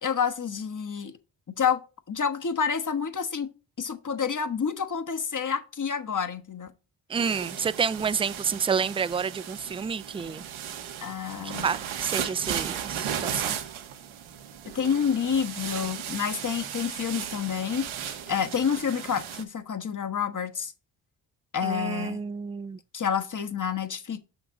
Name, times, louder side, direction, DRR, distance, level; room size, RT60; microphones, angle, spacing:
voice 1, 0.0-1.1 1.6-1.8 2.1-6.7 11.0-11.6 14.7-17.9 18.3-20.7 21.5-22.2 22.9-24.2, left 7 dB, 40° left, 1.3 m, -28 dB
voice 2, 7.1-10.4 11.6-13.6 21.6-22.8, right 6 dB, 15° right, 0.3 m, -29 dB
sound 1, 7.1-19.4, right 9 dB, 85° right, 1.2 m, -36 dB
7.1 x 6.0 x 3.8 m
cardioid pair, 55°, 47 cm